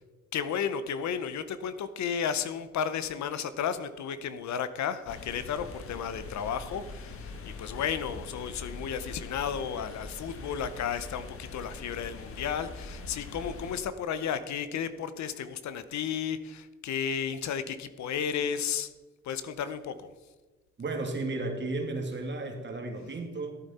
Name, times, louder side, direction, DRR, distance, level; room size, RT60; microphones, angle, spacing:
voice 1, 0.3-18.9 19.2-20.1, left 7 dB, 65° left, 13 dB, 0.8 m, -33 dB
sound 1, 5.1-13.8, left 3 dB, 45° left, 1.4 m, -43 dB
voice 2, 20.8-23.6, right 2 dB, 35° right, 3 dB, 2.2 m, -34 dB
14.5 x 9.0 x 4.3 m, 1.3 s
cardioid pair, 90°, 30 cm